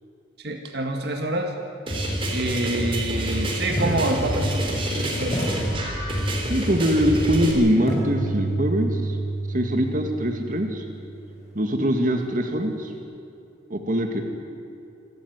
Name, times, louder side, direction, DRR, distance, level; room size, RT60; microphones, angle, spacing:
voice 1, 0.4-1.5 2.3-5.4, right 1 dB, 60° right, 4 dB, 2.0 m, -27 dB
sound 1, 1.9-7.5, equal, 30° right, 3.9 m, -27 dB
sound 2, 2.8-2.9 3.8-4.9 5.3-6.6 7.9-11.8, right 2 dB, 35° left, 6.7 m, -30 dB
voice 2, 6.5-9.0 9.5-10.8 11.6-12.9 13.7-14.2, equal, 45° right, 4 dB, 2.0 m, -22 dB
27.5 x 13.0 x 9.5 m, 2.6 s
head